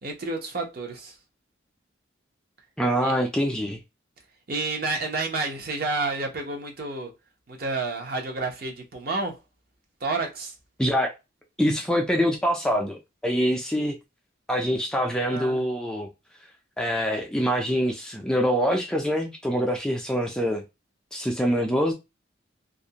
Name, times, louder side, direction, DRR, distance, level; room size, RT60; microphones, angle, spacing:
voice 1, 0.0-1.2 3.0-3.2 4.5-7.1 7.5-9.4 10.0-10.5 15.3-15.6, right 3 dB, 50° right, 0.7 m, -30 dB
voice 2, 2.8-3.8 10.8-11.1 11.6-13.0 13.2-13.9 14.5-16.1 16.8-20.6 21.1-21.9, equal, 5° left, 0.3 m, -24 dB
2.4 x 2.1 x 2.8 m
head